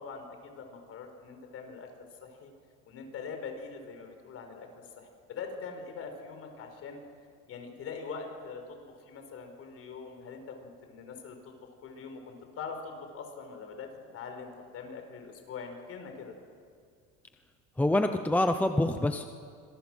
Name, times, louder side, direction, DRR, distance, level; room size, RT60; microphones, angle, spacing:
voice 1, 0.0-1.9 2.2-2.5 2.8-4.7 5.0-7.0 7.5-13.9 14.1-16.3, left 5 dB, 45° left, 5 dB, 4.8 m, -43 dB
voice 2, 17.8-19.2, left 1 dB, 5° left, 7 dB, 0.7 m, -26 dB
26.5 x 23.0 x 6.3 m, 2.2 s
cardioid pair, 150°, 31 cm